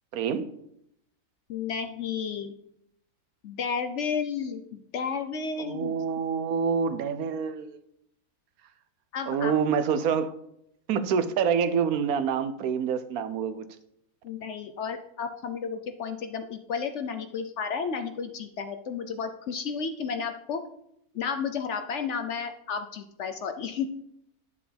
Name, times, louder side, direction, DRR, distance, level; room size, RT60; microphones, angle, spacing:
voice 1, 0.1-0.5 5.6-7.8 9.3-10.3 10.9-13.6, right 6 dB, 75° right, 1.1 m, -27 dB
voice 2, 1.5-2.5 3.4-5.9 9.1-9.5 14.2-20.6 21.1-23.9, left 6 dB, 60° left, 0.9 m, -32 dB
10.0 x 6.8 x 3.4 m
omnidirectional pair, 1.6 m